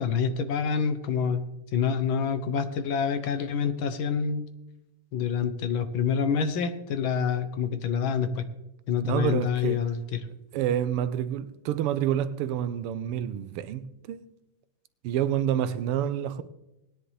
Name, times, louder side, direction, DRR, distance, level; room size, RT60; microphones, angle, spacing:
voice 1, 0.0-1.4 1.7-4.5 5.1-8.4 8.9-10.3, left 6 dB, 70° left, 1.5 m, -27 dB
voice 2, 9.0-9.8 10.5-14.2 15.0-16.4, right 10 dB, 90° right, 1.6 m, -28 dB
19.0 x 10.0 x 3.3 m
omnidirectional pair, 2.4 m